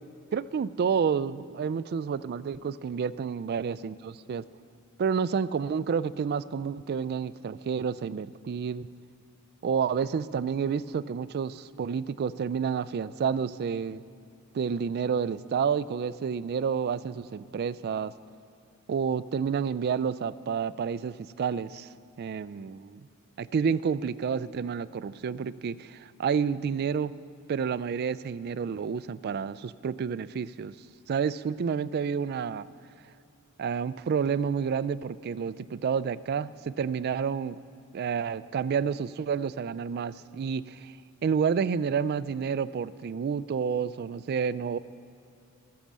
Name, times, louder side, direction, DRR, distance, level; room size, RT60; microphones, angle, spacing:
voice 1, 0.3-4.4 5.0-8.9 9.6-14.0 14.5-18.1 18.9-21.9 22.2-23.0 23.4-27.1 27.5-30.7 31.1-32.7 33.6-37.6 37.9-41.0 41.2-44.8, right 6 dB, 50° right, 16 dB, 0.3 m, -29 dB
13.5 x 8.6 x 7.4 m, 2.6 s
head